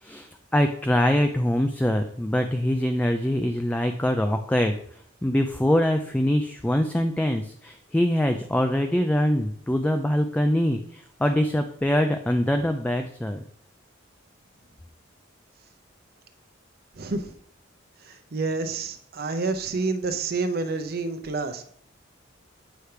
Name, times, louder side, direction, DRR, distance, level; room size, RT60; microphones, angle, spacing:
voice 1, 0.0-4.7 5.2-13.4, left 1 dB, 10° left, 6 dB, 0.3 m, -24 dB
voice 2, 16.9-17.3 18.0-21.6, right 3 dB, 50° right, 9 dB, 0.7 m, -28 dB
8.0 x 3.3 x 5.7 m, 0.64 s
head